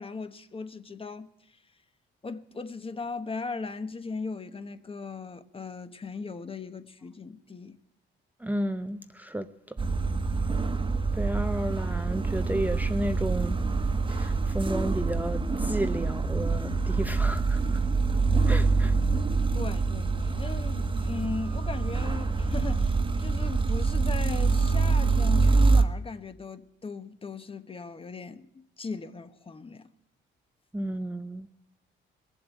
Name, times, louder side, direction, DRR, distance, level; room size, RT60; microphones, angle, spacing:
voice 1, 0.0-1.6 2.2-7.8 19.5-29.9, left 4 dB, 30° left, 1.2 m, -38 dB
voice 2, 8.4-9.8 11.1-13.6 14.1-17.8 18.5-18.9 30.7-31.5, right 1 dB, 10° right, 0.7 m, -32 dB
sound 1, 9.8-25.8, right 4 dB, 25° right, 1.2 m, -25 dB
20.0 x 7.8 x 9.0 m
cardioid pair, 90°, 20 cm